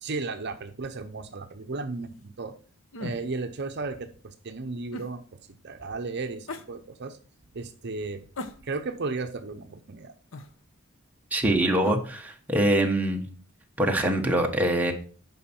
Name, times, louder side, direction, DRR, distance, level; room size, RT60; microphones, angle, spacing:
voice 1, 0.0-2.5 3.0-5.2 5.6-7.2 7.5-8.3 8.6-10.1, right 3 dB, 55° right, 7 dB, 0.8 m, -34 dB
sound 1, 2.9-3.2 4.9-5.1 6.5-6.7 8.3-9.0 10.3-10.5 11.8-12.0, left 2 dB, 65° left, 0.9 m, -38 dB
voice 2, 11.3-13.2 13.8-14.9, right 1 dB, 10° right, 1 dB, 1.2 m, -24 dB
9.2 x 5.6 x 4.4 m, 0.43 s
head